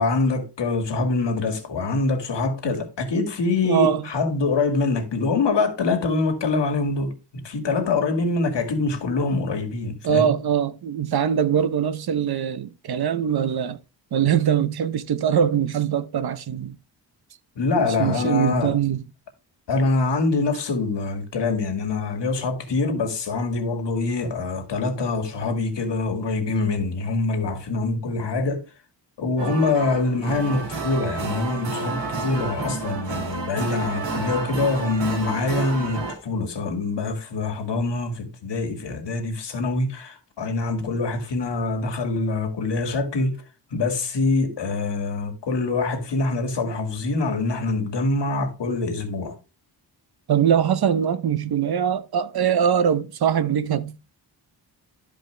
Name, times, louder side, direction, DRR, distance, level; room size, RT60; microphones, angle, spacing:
voice 1, 0.0-10.3 17.6-18.7 19.7-28.6 29.2-43.4 43.7-49.4, left 3 dB, 75° left, 2.2 m, -24 dB
voice 2, 3.6-4.0 10.0-13.8 14.1-16.8 17.8-19.0 50.3-54.0, right 8 dB, 60° right, 0.8 m, -22 dB
sound 1, 29.4-36.2, right 3 dB, 90° right, 2.5 m, -30 dB
12.5 x 5.1 x 3.3 m
wide cardioid pair, 150°, 43 cm